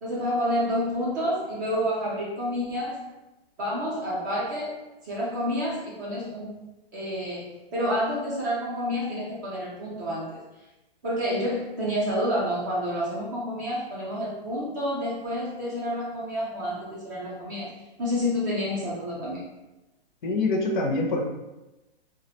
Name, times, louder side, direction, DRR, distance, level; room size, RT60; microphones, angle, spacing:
voice 1, 0.0-3.1 3.6-6.6 6.9-10.4 11.0-17.7 18.0-19.4, equal, 20° right, -7 dB, 0.4 m, -29 dB
voice 2, 20.2-21.3, left 2 dB, 50° left, 1 dB, 0.6 m, -25 dB
2.4 x 2.1 x 2.8 m, 1.0 s
hypercardioid pair, 155°, 30 cm